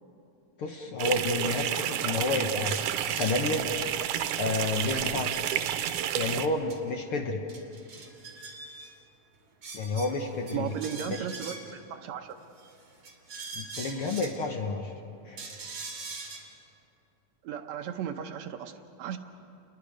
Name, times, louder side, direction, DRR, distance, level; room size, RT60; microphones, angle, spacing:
voice 1, 0.6-3.7 4.4-5.4 6.2-7.4 9.7-10.7 11.1-11.3 13.5-14.9 15.2-15.4, left 3 dB, 60° left, 3 dB, 1.7 m, -30 dB
sound 1, 1.0-6.5, right 11 dB, 90° right, 2.2 m, -30 dB
sound 2, 2.6-3.4 3.8-3.9 4.1-4.2 4.6-6.0 6.7-6.8 7.1-7.2 7.5-8.9 9.6-11.8 12.6-14.4 15.4-16.4, right 3 dB, 55° right, 3.6 m, -43 dB
voice 2, 10.5-12.4 17.4-19.2, right 9 dB, 70° right, 7 dB, 2.0 m, -36 dB
29.5 x 22.0 x 5.1 m, 2.8 s
omnidirectional pair, 3.5 m